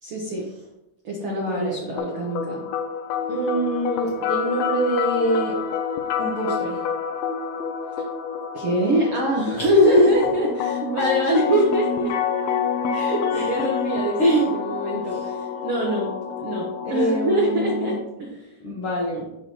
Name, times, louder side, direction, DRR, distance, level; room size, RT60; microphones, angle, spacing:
voice 1, 0.0-0.4 1.0-2.6 8.0-8.1 8.5-12.1 12.9-16.1 16.4-18.6, right 1 dB, 80° right, -2 dB, 1.3 m, -25 dB
voice 2, 1.2-1.8 3.3-5.5 6.2-6.8 9.6-10.1 13.3-13.6 14.2-14.5 15.0-15.2 16.9-18.0 18.6-19.2, equal, 70° left, -5 dB, 1.3 m, -22 dB
sound 1, 2.0-18.0, left 6 dB, 90° left, 2.5 m, -28 dB
7.3 x 6.2 x 2.8 m, 0.90 s
omnidirectional pair, 4.2 m